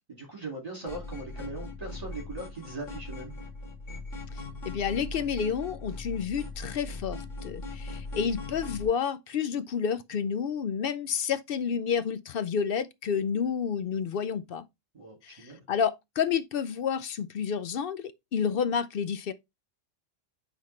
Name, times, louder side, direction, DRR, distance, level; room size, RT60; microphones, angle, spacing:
voice 1, 0.1-3.4 14.9-15.6, right 2 dB, 30° right, 2.3 m, -40 dB
sound 1, 0.9-8.8, left 2 dB, 80° left, 1.9 m, -40 dB
voice 2, 4.3-14.7 15.2-19.3, left 7 dB, 60° left, 0.6 m, -30 dB
9.2 x 3.6 x 3.1 m
omnidirectional pair, 1.3 m